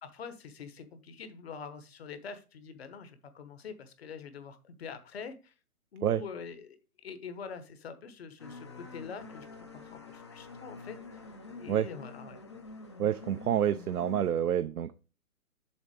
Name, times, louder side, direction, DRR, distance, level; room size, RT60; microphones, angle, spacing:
voice 1, 0.0-5.5 5.9-6.8 7.0-9.5 9.7-11.2 11.6-12.4, left 6 dB, 45° left, 11 dB, 1.1 m, -45 dB
sound 1, 8.4-14.3, left 3 dB, 20° left, 0.5 m, -47 dB
voice 2, 13.0-14.9, right 10 dB, 80° right, 11 dB, 0.7 m, -28 dB
7.3 x 4.1 x 4.8 m, 0.32 s
hypercardioid pair, 155°, 44 cm